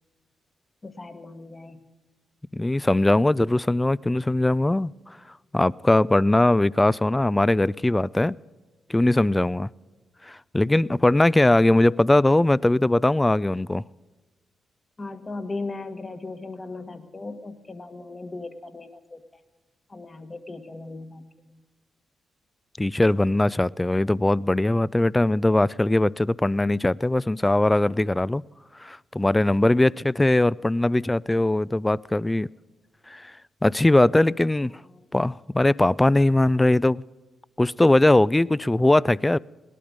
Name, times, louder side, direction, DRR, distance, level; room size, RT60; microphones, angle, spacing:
voice 1, 0.8-1.8 11.3-11.4 15.0-19.2 19.9-21.6 34.9-35.1, left 3 dB, 30° left, 1.5 m, -37 dB
voice 2, 2.5-4.9 5.5-8.4 8.9-9.7 10.2-13.8 22.8-28.4 28.8-32.5 33.1-33.3 33.6-34.7 35.1-37.0 37.6-39.4, left 1 dB, 15° left, 0.4 m, -20 dB
18.5 x 12.0 x 5.2 m
supercardioid pair, 50°, 0 cm